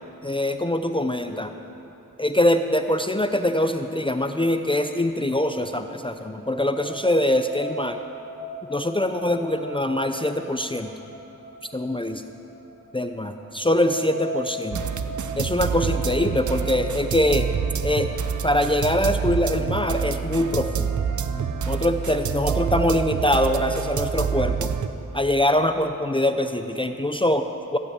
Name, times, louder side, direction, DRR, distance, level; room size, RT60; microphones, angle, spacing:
voice 1, 0.2-1.6 2.2-8.0 8.7-10.9 11.7-12.2 12.9-14.8 15.4-17.5 17.8-18.1 18.4-20.9 21.7-24.7 25.1-27.8, left 1 dB, 15° left, 7 dB, 0.5 m, -23 dB
sound 1, 6.1-24.6, right 2 dB, 45° right, 2.5 m, -38 dB
sound 2, 14.7-24.9, right 7 dB, 60° right, 0.7 m, -27 dB
15.0 x 8.2 x 8.6 m, 2.9 s
wide cardioid pair, 95°, 33 cm